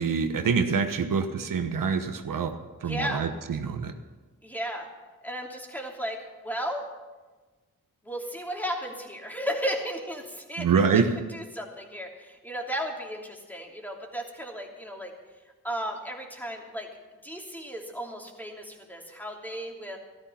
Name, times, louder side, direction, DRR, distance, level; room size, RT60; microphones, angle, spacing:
voice 1, 0.0-3.9 10.6-11.1, right 6 dB, 80° right, 7 dB, 1.1 m, -26 dB
voice 2, 2.8-3.3 4.4-4.9 5.2-6.9 8.0-11.0 11.3-15.1 15.6-16.9 17.2-20.0, equal, 5° left, 0 dB, 2.9 m, -34 dB
14.0 x 13.5 x 5.8 m, 1.3 s
cardioid pair, 80°, 32 cm